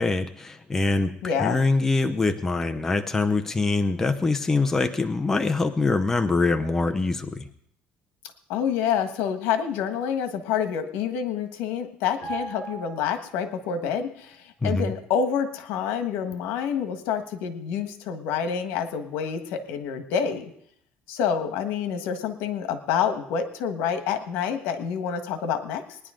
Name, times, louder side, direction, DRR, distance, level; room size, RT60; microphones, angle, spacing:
voice 1, 0.0-7.5 14.6-14.9, left 3 dB, 10° left, 6 dB, 0.7 m, -24 dB
voice 2, 1.2-1.6 8.5-14.4 14.6-20.5 21.1-26.0, left 7 dB, 85° left, 8 dB, 1.4 m, -27 dB
sound 1, 12.2-13.8 14.1-14.3, right 4 dB, 50° left, 7.3 m, -38 dB
20.5 x 10.5 x 3.8 m, 0.69 s
cardioid pair, 155°, 4 cm